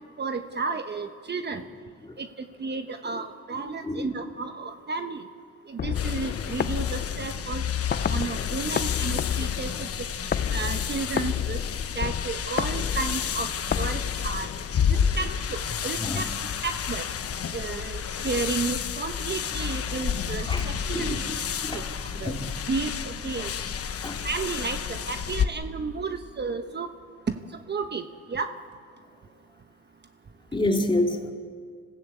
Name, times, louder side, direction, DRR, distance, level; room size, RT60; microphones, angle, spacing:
voice 1, 0.2-1.6 2.2-2.3 2.6-5.2 5.7-9.9 10.5-11.6 11.9-13.5 13.8-14.5 14.9-16.3 16.6-17.1 17.5-21.2 21.7-21.8 22.2-22.4 22.7-23.5 24.2-26.9 27.3-27.4 27.7-28.0 28.3-28.5, right 4 dB, 35° right, 8 dB, 1.1 m, -32 dB
sound 1, 5.8-14.8, left 8 dB, 35° left, 0.6 m, -30 dB
sound 2, 5.9-25.5, left 7 dB, 50° left, 1.2 m, -31 dB
voice 2, 20.9-21.4 21.6-21.9 22.2-22.4 24.0-24.1 30.5-31.3, left 1 dB, 15° left, 2 dB, 2.9 m, -27 dB
26.0 x 16.0 x 8.4 m, 2.1 s
cardioid pair, 90°, 30 cm